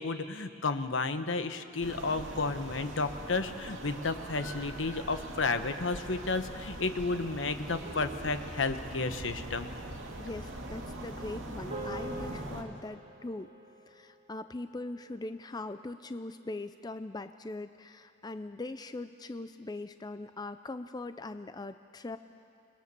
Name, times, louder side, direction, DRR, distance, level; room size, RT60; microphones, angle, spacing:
voice 1, 0.0-9.7, left 3 dB, 70° left, 9 dB, 1.1 m, -32 dB
sound 1, 1.8-12.6, right 1 dB, 70° right, 2.7 m, -42 dB
voice 2, 10.2-13.5 13.9-22.2, left 2 dB, 20° left, 10 dB, 0.5 m, -41 dB
sound 2, 11.7-16.2, right 2 dB, 30° right, 4.3 m, -46 dB
28.5 x 21.0 x 6.8 m, 2.5 s
head